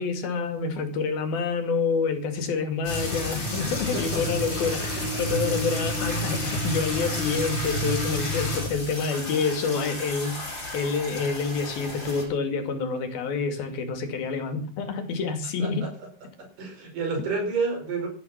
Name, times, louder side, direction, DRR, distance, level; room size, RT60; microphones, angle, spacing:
voice 1, 0.0-15.9, left 5 dB, 80° left, 4.3 m, -28 dB
sound 1, 2.8-12.2, left 1 dB, 30° left, 6.9 m, -30 dB
voice 2, 3.6-4.2 4.8-5.2 5.5-5.6 15.6-15.9 16.4-18.1, right 4 dB, 65° right, 6.6 m, -31 dB
18.0 x 13.0 x 5.8 m
omnidirectional pair, 4.2 m